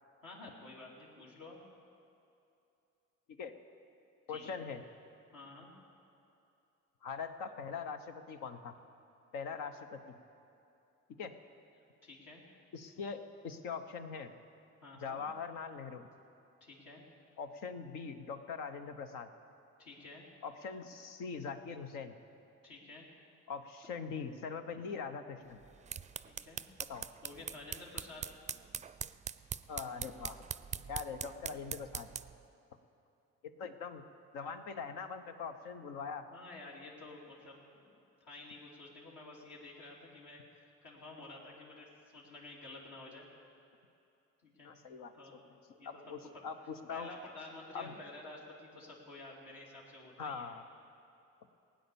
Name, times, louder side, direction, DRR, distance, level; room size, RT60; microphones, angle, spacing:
voice 1, 0.2-1.6 4.3-4.6 5.3-5.7 12.0-12.4 14.8-15.2 16.6-17.0 19.8-20.2 22.6-23.1 26.2-26.6 27.2-28.2 36.3-43.3 44.4-44.7 45.1-45.3 45.8-46.2 46.9-50.5, left 2 dB, 75° left, -4 dB, 3.1 m, -51 dB
voice 2, 4.3-4.8 7.0-8.7 9.3-10.2 11.2-11.3 12.7-14.3 15.0-16.0 17.4-19.3 20.4-22.1 23.5-25.6 26.9-27.1 29.7-30.4 30.9-32.1 33.4-34.0 34.3-36.3 44.6-45.1 45.8-47.1 47.7-47.9 50.2-50.6, left 5 dB, 90° left, 7 dB, 0.9 m, -42 dB
sound 1, 25.6-32.4, right 7 dB, 25° right, 0.4 m, -43 dB
17.0 x 9.2 x 7.0 m, 2.7 s
supercardioid pair, 75°, 31 cm